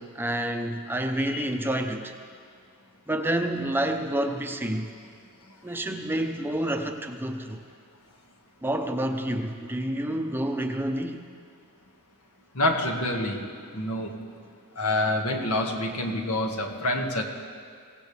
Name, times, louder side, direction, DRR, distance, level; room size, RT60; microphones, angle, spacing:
voice 1, 0.0-2.1 3.1-4.9 5.6-7.6 8.6-11.2, right 1 dB, 10° right, 3 dB, 0.8 m, -28 dB
voice 2, 12.6-13.4 13.7-14.4 14.8-17.2, left 1 dB, 75° left, 1 dB, 1.8 m, -27 dB
25.0 x 17.0 x 3.4 m, 2.1 s
head